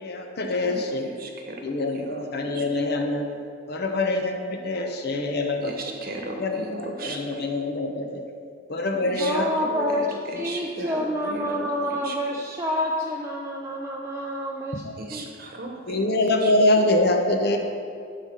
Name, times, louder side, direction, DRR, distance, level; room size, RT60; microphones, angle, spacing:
voice 1, 0.0-1.1 1.6-3.2 3.7-5.7 6.4-8.2 8.7-9.5 9.7-9.9 15.9-17.6, left 2 dB, 55° left, 4 dB, 0.8 m, -24 dB
voice 2, 0.6-1.6 1.9-2.2 2.5-2.7 5.6-7.5 9.0-11.7 12.0-12.1 15.0-16.5, right 2 dB, 50° right, 2 dB, 1.1 m, -37 dB
voice 3, 9.2-10.1 10.3-14.8 15.1-15.3 15.7-15.8, equal, 15° right, -2 dB, 0.5 m, -28 dB
11.5 x 4.1 x 6.3 m, 2.3 s
head